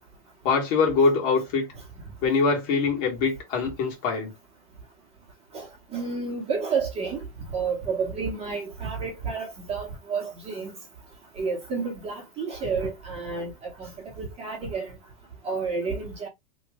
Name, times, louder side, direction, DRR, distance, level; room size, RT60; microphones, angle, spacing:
voice 1, 0.4-1.7 2.2-4.3, left 4 dB, 45° left, 1.8 m, -23 dB
voice 2, 5.9-7.2 7.5-10.7 11.4-13.9 14.2-14.9 15.4-16.3, right 5 dB, 20° right, 1.3 m, -30 dB
3.1 x 2.5 x 3.5 m
supercardioid pair, 150°, 31 cm